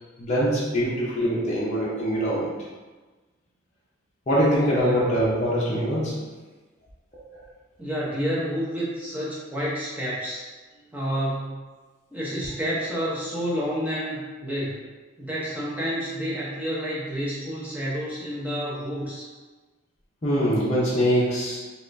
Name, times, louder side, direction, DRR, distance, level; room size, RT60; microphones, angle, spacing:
voice 1, 0.2-2.5 4.3-6.2 20.2-21.6, equal, 30° left, -8 dB, 0.6 m, -23 dB
voice 2, 4.6-5.2 7.8-10.5 10.9-11.7 12.1-14.8 15.2-19.3, equal, 5° right, -7 dB, 0.7 m, -29 dB
4.1 x 2.4 x 2.6 m, 1.3 s
head